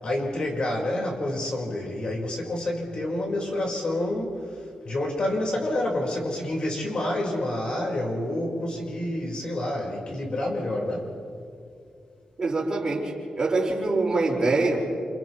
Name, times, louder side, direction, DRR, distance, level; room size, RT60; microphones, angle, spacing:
voice 1, 0.0-4.4 4.8-11.1, left 1 dB, 45° left, -1 dB, 4.9 m, -28 dB
voice 2, 12.4-14.9, right 3 dB, 35° right, -4 dB, 5.1 m, -24 dB
29.0 x 28.5 x 3.2 m, 2.5 s
wide cardioid pair, 135°, 2 cm